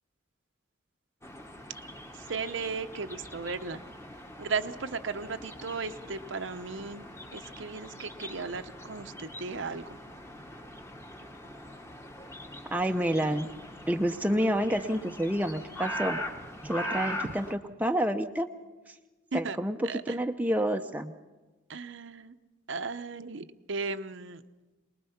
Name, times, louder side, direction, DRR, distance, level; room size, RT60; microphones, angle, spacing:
sound 1, 1.2-17.5, equal, 15° left, 1.3 m, -42 dB
voice 1, 2.1-3.8 4.4-7.0 7.3-10.0 19.3-20.2 21.7-22.3 22.7-24.4, right 4 dB, 65° right, 10 dB, 0.8 m, -36 dB
voice 2, 12.7-13.5 13.9-16.2 16.6-18.5 18.9-19.0 19.3-21.1, equal, 10° right, 5 dB, 0.6 m, -29 dB
23.5 x 20.0 x 5.8 m, 1.2 s
head